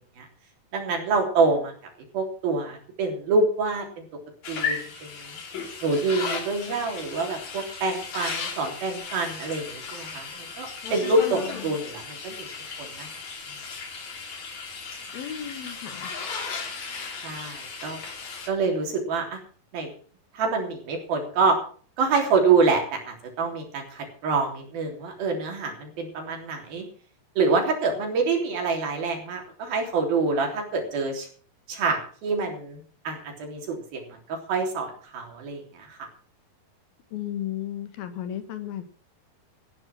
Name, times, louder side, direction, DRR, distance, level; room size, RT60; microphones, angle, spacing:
voice 1, 0.7-1.7 2.1-4.1 4.5-5.4 5.8-12.5 12.8-13.1 17.2-18.0 18.5-19.4 19.7-19.9 20.3-21.6 22.0-26.9 27.4-31.3 31.7-34.0 34.3-36.0, right 4 dB, 75° right, 2 dB, 5.3 m, -26 dB
sound 1, 4.4-18.5, left 5 dB, 50° left, 3.7 m, -36 dB
voice 2, 11.2-11.7 15.1-16.1 37.1-38.8, left 10 dB, 80° left, 9 dB, 3.5 m, -34 dB
15.5 x 10.5 x 6.1 m, 0.43 s
omnidirectional pair, 4.2 m